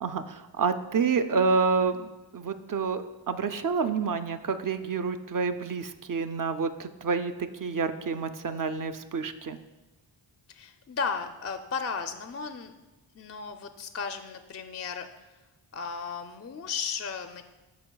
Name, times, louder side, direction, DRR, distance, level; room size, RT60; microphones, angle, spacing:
voice 1, 0.0-7.3 7.6-9.6, right 5 dB, 45° right, 9 dB, 0.4 m, -28 dB
voice 2, 10.5-12.7 13.1-15.3 15.7-17.4, left 5 dB, 30° left, 7 dB, 0.4 m, -35 dB
12.5 x 4.7 x 2.3 m, 1.1 s
wide cardioid pair, 65°, 50 cm